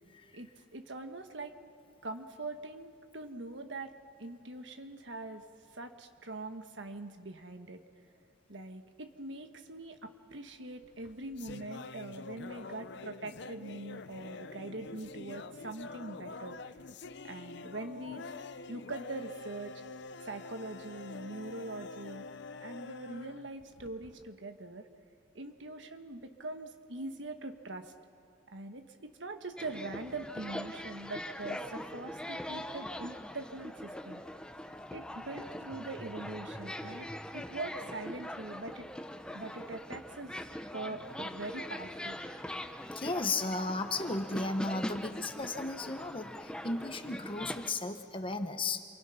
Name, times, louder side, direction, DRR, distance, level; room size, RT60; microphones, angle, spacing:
voice 1, 0.3-1.5 2.0-3.9 4.2-5.4 5.7-7.8 8.5-16.6 17.2-18.2 18.7-19.8 20.2-22.2 22.6-24.9 25.3-27.9 28.5-34.2 34.9-38.9 39.3-40.4 40.7-42.2, right 2 dB, 70° right, 7 dB, 1.6 m, -43 dB
sound 1, 10.8-24.3, left 4 dB, 60° left, 0.7 m, -46 dB
sound 2, 29.6-47.7, left 1 dB, 5° left, 0.8 m, -42 dB
voice 2, 42.9-48.8, left 3 dB, 30° left, 7 dB, 1.2 m, -35 dB
28.0 x 24.0 x 5.8 m, 2.2 s
head